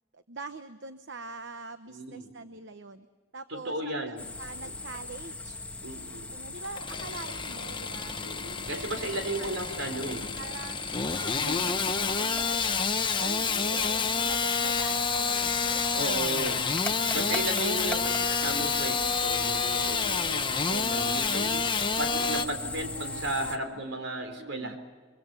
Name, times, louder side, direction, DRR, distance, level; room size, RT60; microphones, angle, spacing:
voice 1, 0.1-3.1 3.3-5.6 6.3-8.3 8.7-9.5 9.9-12.8 13.2-16.6 17.0-18.2 20.7-21.1 22.1-23.5 24.4-24.7, right 3 dB, 65° right, 9 dB, 1.0 m, -44 dB
voice 2, 1.9-2.3 3.5-4.2 4.6-4.7 5.8-6.3 8.1-10.3 11.4-11.8 13.5-13.8 15.9-16.6 17.1-24.8, right 1 dB, 80° right, 6 dB, 4.1 m, -35 dB
sound 1, 4.2-23.6, left 3 dB, 5° left, 1.4 m, -38 dB
Engine starting / Sawing, 6.6-22.5, left 5 dB, 25° left, 0.9 m, -29 dB
25.0 x 24.0 x 6.9 m, 1.4 s
head